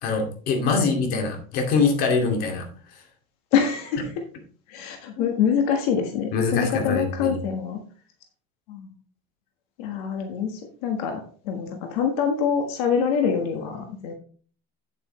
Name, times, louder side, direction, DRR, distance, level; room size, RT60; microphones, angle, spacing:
voice 1, 0.0-2.6 5.2-5.3 6.3-7.4, left 4 dB, 50° left, 4 dB, 2.3 m, -24 dB
voice 2, 3.5-4.2 4.7-7.8 8.7-8.9 9.8-14.1, left 7 dB, 85° left, 4 dB, 1.5 m, -25 dB
8.9 x 8.4 x 3.2 m, 0.42 s
cardioid pair, 160°, 19 cm